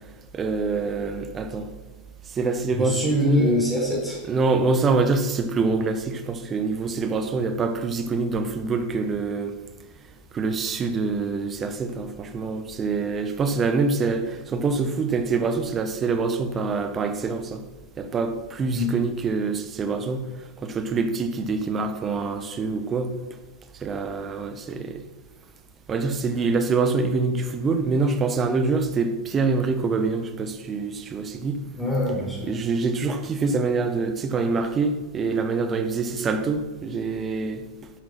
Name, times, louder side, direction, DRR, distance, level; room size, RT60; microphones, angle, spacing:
voice 1, 0.3-1.7 2.3-3.6 4.2-9.6 10.3-17.6 18.0-20.2 20.6-23.1 23.7-25.0 25.9-31.6 32.5-37.6, right 4 dB, 25° right, 7 dB, 1.5 m, -25 dB
voice 2, 2.8-4.2 18.7-18.9 31.7-32.5, left 1 dB, 5° left, -4 dB, 4.4 m, -24 dB
11.0 x 10.5 x 5.9 m, 1.2 s
figure-of-eight pair, 90°, 0 cm